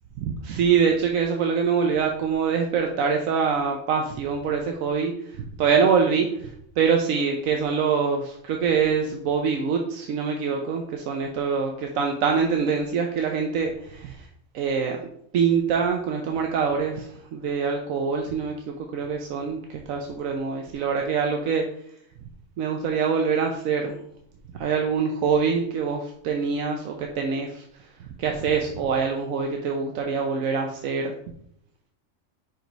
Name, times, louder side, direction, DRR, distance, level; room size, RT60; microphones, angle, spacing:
voice 1, 0.2-14.2 14.5-15.1 15.3-18.5 18.9-21.6 22.6-24.0 24.6-27.6 28.2-31.1, right 6 dB, 80° right, 2 dB, 1.1 m, -24 dB
5.1 x 5.0 x 4.6 m, 0.70 s
omnidirectional pair, 1.4 m